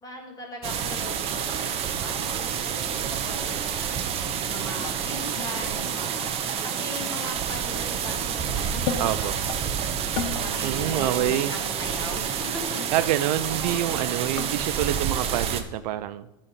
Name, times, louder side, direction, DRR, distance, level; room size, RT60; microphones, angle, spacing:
voice 1, 0.0-4.0 4.5-9.5 10.3-12.5 13.6-14.1, left 1 dB, 15° left, 0 dB, 2.1 m, -39 dB
sound 1, 0.6-15.6, right 8 dB, 30° right, 0.7 m, -29 dB
sound 2, 4.8-9.6 10.0-10.5 10.8-11.0 11.4-11.5 12.5-13.6 13.9-14.7, left 8 dB, 65° left, 0.9 m, -37 dB
voice 2, 9.0-9.3 10.6-11.5 12.9-16.4, right 13 dB, 75° right, 14 dB, 0.5 m, -27 dB
12.0 x 4.2 x 5.6 m, 0.97 s
supercardioid pair, 155°, 21 cm